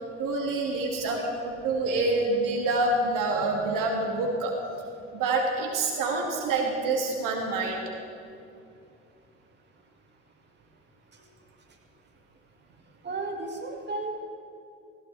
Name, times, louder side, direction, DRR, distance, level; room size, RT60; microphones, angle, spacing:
voice 1, 0.2-4.5 5.1-7.8, right 3 dB, 60° right, 1 dB, 2.4 m, -27 dB
voice 2, 13.0-14.1, right 3 dB, 30° right, 1 dB, 2.2 m, -33 dB
17.5 x 16.0 x 3.5 m, 2.6 s
hypercardioid pair, 55°, 36 cm